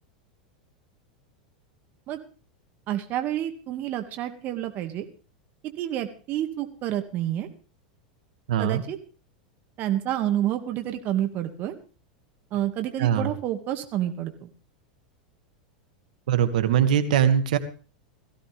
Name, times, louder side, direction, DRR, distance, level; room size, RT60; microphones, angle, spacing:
voice 1, 2.9-5.1 5.8-7.5 8.6-9.0 9.8-11.7 12.5-14.5, right 12 dB, 45° right, 7 dB, 2.1 m, -29 dB
voice 2, 8.5-8.8 13.0-13.3 16.3-17.6, right 9 dB, 70° right, 9 dB, 2.2 m, -21 dB
18.0 x 15.5 x 3.5 m, 0.38 s
hypercardioid pair, 100°, 4 cm